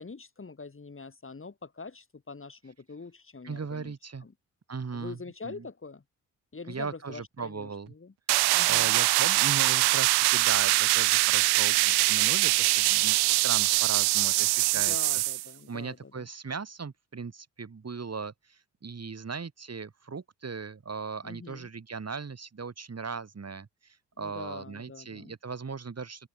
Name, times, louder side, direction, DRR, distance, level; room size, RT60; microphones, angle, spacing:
voice 1, 0.0-3.9 4.2-4.3 4.9-6.0 6.5-8.1 8.5-8.9 14.7-16.3 21.2-21.7 24.2-25.3, left 4 dB, 30° left, 6.3 m, -44 dB
voice 2, 3.4-4.3 4.7-5.7 6.7-7.9 8.6-15.2 15.7-26.3, right 5 dB, 40° right, 6.2 m, -38 dB
sound 1, 8.3-15.5, right 21 dB, 80° right, 1.5 m, -23 dB
open air
hypercardioid pair, 45°, 39 cm